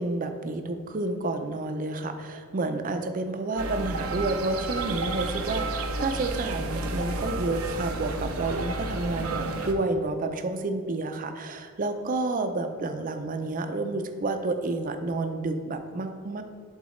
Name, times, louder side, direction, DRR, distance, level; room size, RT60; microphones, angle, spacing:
voice 1, 0.0-16.4, right 2 dB, 40° right, 7 dB, 0.5 m, -30 dB
sound 1, 3.6-9.7, right 2 dB, 90° right, 0.7 m, -31 dB
11.0 x 4.0 x 3.2 m, 2.1 s
head